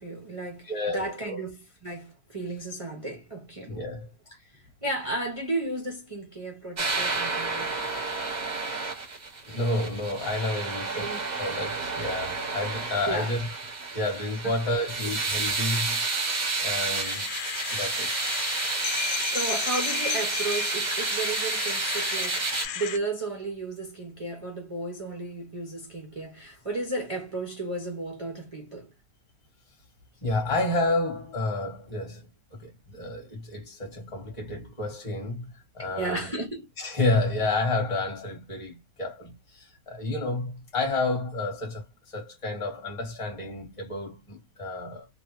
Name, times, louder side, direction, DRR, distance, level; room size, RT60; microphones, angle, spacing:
voice 1, 0.0-3.8 4.4-7.8 10.9-11.2 13.1-13.3 19.3-28.9 35.8-36.6, right 2 dB, 60° right, 0.3 m, -34 dB
voice 2, 0.7-1.4 3.7-4.1 9.5-11.1 11.4-13.5 13.9-16.0 16.6-17.3 17.7-18.1 30.2-32.2 32.6-35.4 35.7-36.3 36.8-41.8 42.1-45.1, left 2 dB, 20° left, 1.2 m, -30 dB
sound 1, 6.8-22.7, right 3 dB, 40° right, 0.7 m, -30 dB
sound 2, 16.9-23.0, left 10 dB, 85° left, 1.2 m, -34 dB
3.0 x 2.3 x 2.9 m
omnidirectional pair, 1.9 m